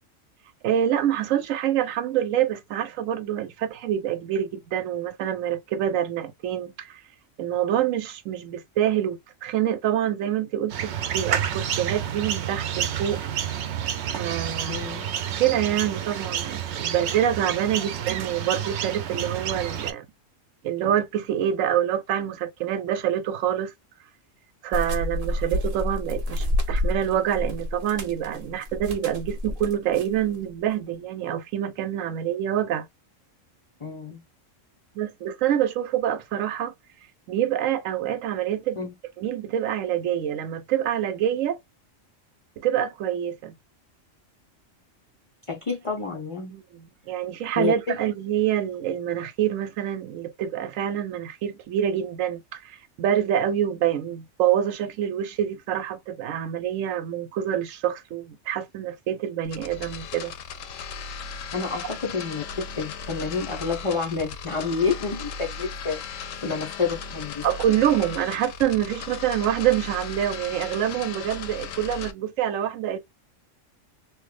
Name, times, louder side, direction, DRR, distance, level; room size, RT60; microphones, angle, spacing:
voice 1, 0.6-7.0 7.4-13.2 14.2-14.9 15.4-20.1 20.6-23.7 24.6-32.9 35.0-36.7 37.3-38.8 39.2-41.6 42.6-43.5 46.5-46.6 47.1-60.3 67.4-73.0, right 10 dB, 85° right, 1.0 m, -26 dB
sound 1, 10.7-19.9, right 9 dB, 65° right, 0.8 m, -29 dB
voice 2, 14.7-15.1 33.8-34.2 38.8-38.9 45.5-46.5 47.6-48.0 61.5-62.4 62.8-67.5, left 5 dB, 60° left, 0.3 m, -29 dB
sound 2, 24.7-30.2, left 1 dB, 45° right, 0.5 m, -28 dB
sound 3, 59.4-72.1, left 5 dB, 80° left, 1.0 m, -37 dB
3.0 x 2.1 x 3.1 m
omnidirectional pair, 1.3 m